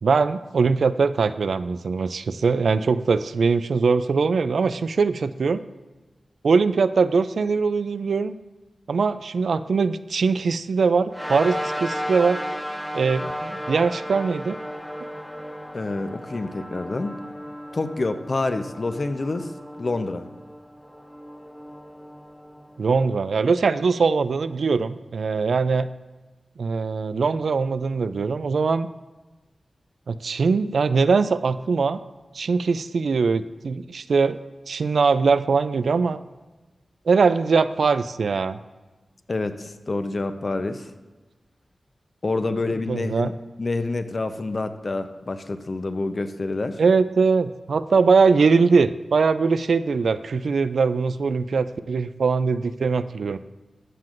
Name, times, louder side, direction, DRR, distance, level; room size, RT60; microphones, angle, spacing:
voice 1, 0.0-5.6 6.4-8.3 8.9-12.4 12.9-14.6 22.8-25.9 26.6-28.9 30.1-32.0 32.3-34.4 34.7-36.2 37.1-38.6 42.9-43.3 46.8-53.4, right 4 dB, 85° right, 13 dB, 0.3 m, -21 dB
sound 1, 11.1-23.8, equal, 5° left, 0.7 m, -35 dB
voice 2, 15.7-17.1 17.7-19.5 19.8-20.2 39.3-40.9 42.2-43.3 43.6-46.8, left 3 dB, 50° left, 9 dB, 0.6 m, -27 dB
13.0 x 7.5 x 2.5 m, 1.2 s
wide cardioid pair, 65°, 0 cm